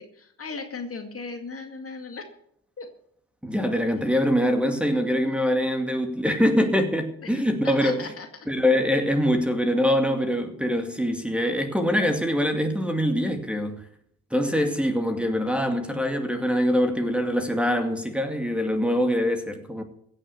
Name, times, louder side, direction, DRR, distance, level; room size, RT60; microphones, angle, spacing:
voice 1, 0.0-2.2 2.8-2.9 7.2-8.3, left 4 dB, 35° left, 2.1 m, -37 dB
voice 2, 3.4-8.1 8.5-13.8 14.3-19.8, equal, 5° right, 2.3 m, -24 dB
16.5 x 6.4 x 8.2 m
hypercardioid pair, 60°, 41 cm